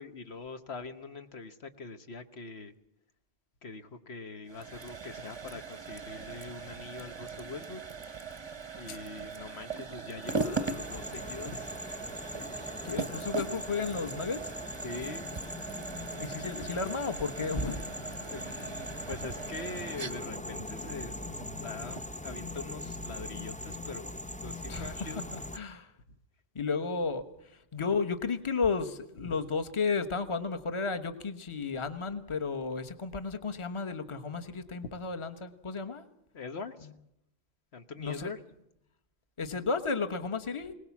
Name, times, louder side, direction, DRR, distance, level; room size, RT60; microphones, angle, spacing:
voice 1, 0.0-2.7 3.6-7.8 8.7-11.7 14.8-15.3 18.2-21.2 21.6-24.1 24.4-25.2 29.2-29.3 36.3-36.9 37.7-38.4, left 3 dB, 70° left, 8 dB, 1.4 m, -43 dB
sound 1, 4.5-22.2, right 4 dB, 30° right, 0.8 m, -40 dB
sound 2, 10.2-25.6, left 1 dB, 10° left, 0.5 m, -41 dB
voice 2, 12.8-14.6 16.2-17.8 24.7-25.9 26.5-36.0 38.0-38.3 39.4-40.7, left 4 dB, 30° left, 9 dB, 1.2 m, -33 dB
21.5 x 19.0 x 7.2 m, 0.80 s
omnidirectional pair, 1.1 m